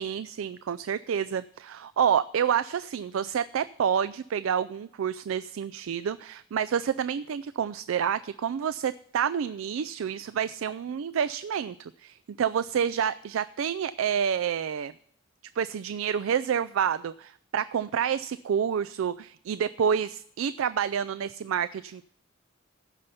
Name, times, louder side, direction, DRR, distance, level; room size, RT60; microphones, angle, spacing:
voice 1, 0.0-11.8 12.0-14.9 15.6-22.0, right 8 dB, 85° right, 14 dB, 0.4 m, -28 dB
15.0 x 5.7 x 6.7 m, 0.64 s
head